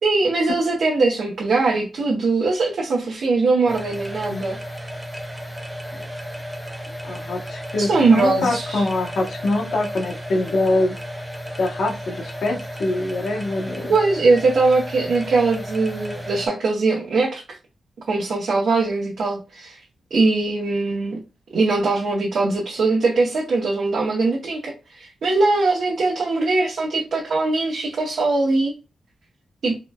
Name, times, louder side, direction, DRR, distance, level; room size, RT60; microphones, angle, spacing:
voice 1, 0.0-4.6 7.8-8.9 13.9-17.6 18.1-19.8 20.1-21.2 21.5-28.7 29.6-29.7, right 3 dB, 75° right, 0.7 m, -21 dB
sound 1, 3.7-16.5, equal, 5° right, 0.5 m, -34 dB
voice 2, 7.0-11.0 11.6-13.9, left 2 dB, 75° left, 0.8 m, -24 dB
3.7 x 2.1 x 2.2 m
wide cardioid pair, 155°, 0 cm